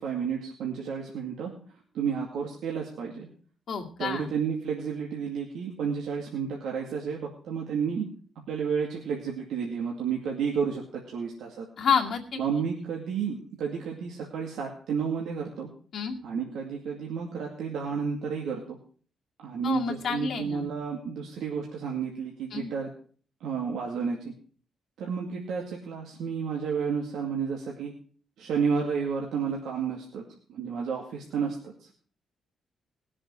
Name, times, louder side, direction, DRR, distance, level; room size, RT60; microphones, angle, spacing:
voice 1, 0.0-1.5 1.9-3.3 4.0-8.1 8.5-11.7 12.4-15.7 16.2-18.8 19.4-22.9 23.4-24.3 25.0-27.9 28.4-30.2 30.5-31.9, right 6 dB, 90° right, -1 dB, 2.3 m, -31 dB
voice 2, 3.7-4.3 11.8-12.4 15.9-16.2 19.6-20.7 22.5-22.7, left 6 dB, 60° left, 1 dB, 2.3 m, -29 dB
19.5 x 7.5 x 4.6 m, 0.43 s
cardioid pair, 130°, 0 cm